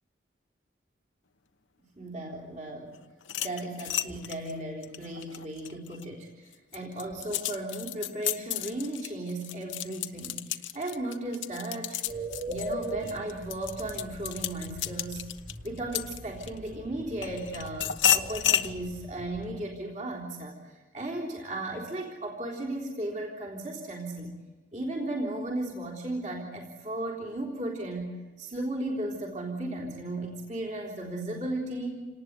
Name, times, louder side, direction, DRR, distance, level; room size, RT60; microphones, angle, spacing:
voice 1, 2.0-3.0 3.4-10.4 10.7-12.0 12.5-15.2 15.6-24.3 24.7-32.1, right 1 dB, 40° right, -1 dB, 3.7 m, -35 dB
sound 1, 3.2-6.1 6.5-16.7 17.2-18.7, left 11 dB, 85° left, 1.1 m, -31 dB
sound 2, 12.1-19.6, right 1 dB, 75° right, 5.7 m, -41 dB
28.0 x 19.0 x 8.2 m, 1.3 s
head